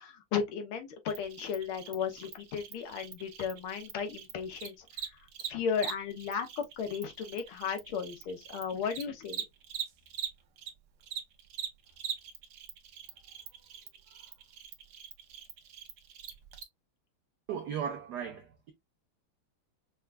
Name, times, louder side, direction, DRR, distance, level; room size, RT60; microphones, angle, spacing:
voice 1, 0.0-4.9 5.5-9.4, left 6 dB, 80° left, 1.7 m, -35 dB
Cricket, 1.1-10.7 11.0-16.6, right 8 dB, 65° right, 1.1 m, -42 dB
voice 2, 17.5-18.7, right 8 dB, 85° right, 0.9 m, -36 dB
5.5 x 2.3 x 2.3 m
omnidirectional pair, 2.4 m